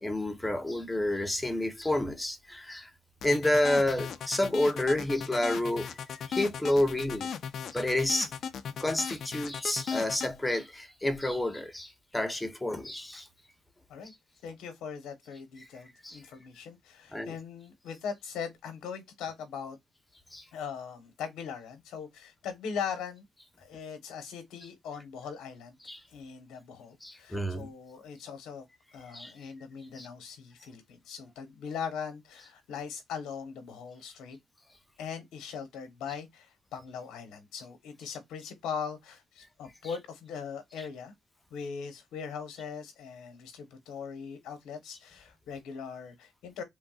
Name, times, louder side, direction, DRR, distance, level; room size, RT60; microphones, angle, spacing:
voice 1, 0.0-2.9 3.2-7.3 7.7-8.3 8.8-13.3 16.0-16.2 17.1-17.3 20.3-20.5 25.8-26.0 27.0-27.7 29.1-29.3 30.0-30.1, left 1 dB, 10° left, 0.8 m, -29 dB
sound 1, 3.2-10.3, left 7 dB, 65° left, 0.5 m, -37 dB
voice 2, 14.4-19.8 20.5-23.2 23.6-25.8 26.1-28.7 28.9-34.4 35.0-41.1 41.5-46.6, left 6 dB, 80° left, 1.0 m, -40 dB
3.5 x 2.2 x 2.3 m
cardioid pair, 90°, 0 cm